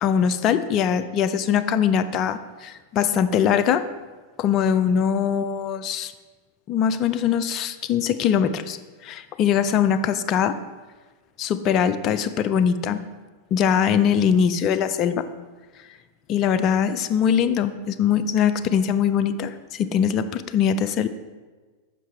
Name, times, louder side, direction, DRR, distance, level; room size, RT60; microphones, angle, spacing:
voice 1, 0.0-3.9 4.4-6.1 6.7-8.8 9.0-10.6 11.4-13.0 13.5-15.3 16.3-21.1, left 8 dB, 35° left, 12 dB, 0.3 m, -22 dB
7.2 x 5.4 x 3.4 m, 1.4 s
figure-of-eight pair, 90°, 0 cm